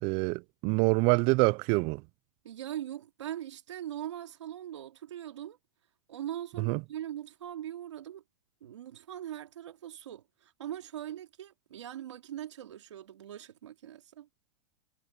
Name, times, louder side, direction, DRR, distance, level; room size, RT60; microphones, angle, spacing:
voice 1, 0.0-2.0 6.6-6.8, right 28 dB, 40° right, 0.4 m, -26 dB
voice 2, 2.4-5.6 6.1-8.2 8.6-14.3, right 11 dB, 90° right, 3.1 m, -41 dB
supercardioid pair, 135°, 15 cm